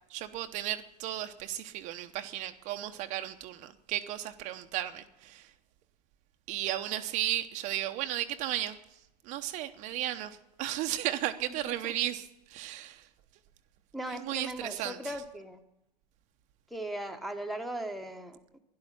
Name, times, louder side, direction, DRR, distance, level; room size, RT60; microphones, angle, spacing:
voice 1, 0.1-5.5 6.5-13.1 14.1-15.2, right 13 dB, 35° right, 0.9 m, -35 dB
voice 2, 13.9-15.6 16.7-18.6, right 1 dB, ahead, 1.2 m, -38 dB
12.5 x 11.5 x 10.0 m
hypercardioid pair, 140°, 20 cm